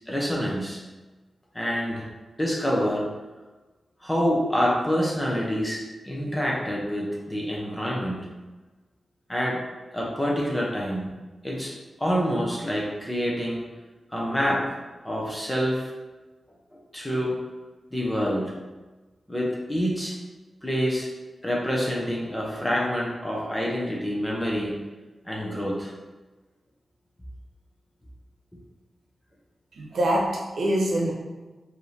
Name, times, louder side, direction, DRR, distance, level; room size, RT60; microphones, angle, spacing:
voice 1, 0.1-0.8 1.5-2.1 2.4-3.1 4.0-8.3 9.3-9.6 9.9-11.1 11.4-13.6 14.1-14.7 15.0-15.9 16.7-17.4 17.9-18.5 19.3-20.2 20.6-21.1 21.4-24.8 25.2-25.9, equal, 10° left, -3 dB, 0.8 m, -27 dB
voice 2, 29.7-31.1, right 1 dB, 85° right, -2 dB, 0.8 m, -24 dB
5.1 x 2.8 x 3.3 m, 1.2 s
wide cardioid pair, 150°, 0 cm